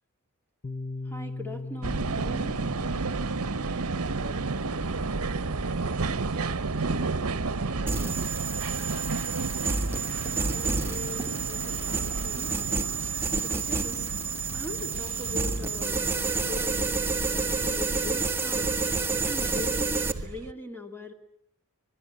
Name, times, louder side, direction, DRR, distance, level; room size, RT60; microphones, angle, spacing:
Piano, 0.6-8.1, left 3 dB, 40° left, 0.9 m, -41 dB
voice 1, 1.1-2.6 10.2-12.5 13.4-14.0 14.5-16.1 16.3-18.8 19.3-21.1, left 1 dB, 10° left, 5 dB, 2.5 m, -40 dB
sound 1, 1.8-20.5, right 3 dB, 70° right, 0.9 m, -33 dB
voice 2, 3.6-4.8 6.2-7.2 7.5-8.2, right 3 dB, 45° right, 11 dB, 1.7 m, -42 dB
sound 2, 7.9-20.1, right 4 dB, 10° right, 1.5 m, -29 dB
25.5 x 21.0 x 8.5 m, 0.73 s
head